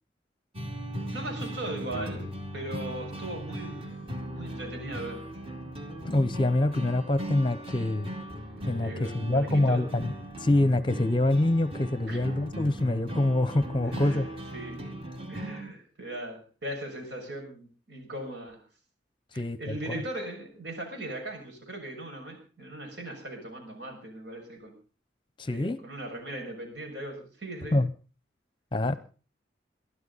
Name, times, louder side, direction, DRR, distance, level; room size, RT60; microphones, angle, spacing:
sound 1, 0.5-15.6, right 1 dB, 30° right, 2.5 m, -38 dB
voice 1, 1.1-3.9 4.3-5.2 8.8-9.9 12.1-12.3 13.8-14.9 15.3-18.6 19.3-24.8 25.5-27.8, right 1 dB, 70° right, 2 dB, 6.3 m, -39 dB
voice 2, 6.0-8.1 8.7-10.1 10.4-14.3 19.3-19.9 25.4-25.8 27.7-27.9 28.7-28.9, left 1 dB, 25° left, 14 dB, 0.8 m, -25 dB
22.5 x 13.0 x 4.1 m, 0.38 s
head